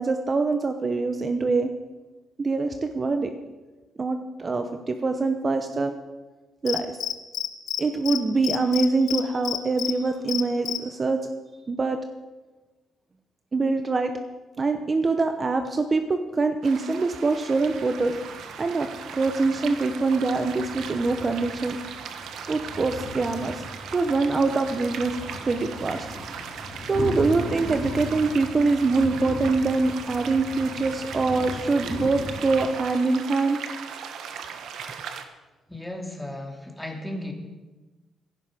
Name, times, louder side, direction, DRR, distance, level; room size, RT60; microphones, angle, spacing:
voice 1, 0.0-1.7 2.4-3.3 4.0-5.9 6.6-6.9 7.8-11.3 11.7-12.0 13.5-14.1 14.6-18.1 18.6-18.9 19.1-21.8 22.5-23.6 23.9-25.2 25.5-26.1 26.9-33.6, right 3 dB, 35° right, 7 dB, 0.9 m, -24 dB
Cricket, 6.7-7.8 8.1-8.2 8.4-9.9 10.3-10.8, left 11 dB, 80° left, 0.8 m, -28 dB
sound 1, 16.6-35.2, right 7 dB, 75° right, 1.2 m, -38 dB
sound 2, 17.5-32.7, left 2 dB, 45° left, 2.7 m, -38 dB
voice 2, 35.7-37.3, left 1 dB, 5° left, 2 dB, 2.6 m, -35 dB
16.0 x 11.5 x 5.1 m, 1.2 s
cardioid pair, 90°, 0 cm